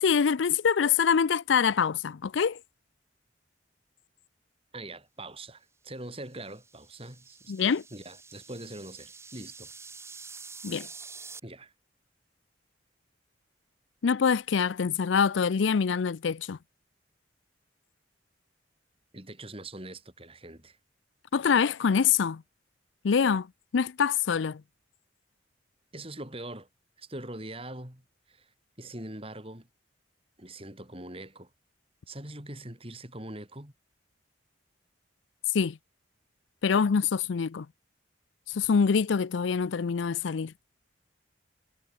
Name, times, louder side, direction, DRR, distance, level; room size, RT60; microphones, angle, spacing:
voice 1, 0.0-2.6 7.5-7.8 10.6-10.9 14.0-16.6 21.3-22.4 23.0-23.5 23.7-24.6 35.5-35.8 36.6-37.7 38.5-40.5, left 6 dB, 75° left, 0.5 m, -25 dB
voice 2, 4.7-7.5 7.9-9.7 11.4-11.7 19.1-20.8 25.9-26.7 27.0-28.5 28.8-29.7 30.4-31.5 32.1-33.7, right 1 dB, 30° right, 6.1 m, -42 dB
sound 1, 6.3-11.4, right 4 dB, 15° right, 2.3 m, -47 dB
head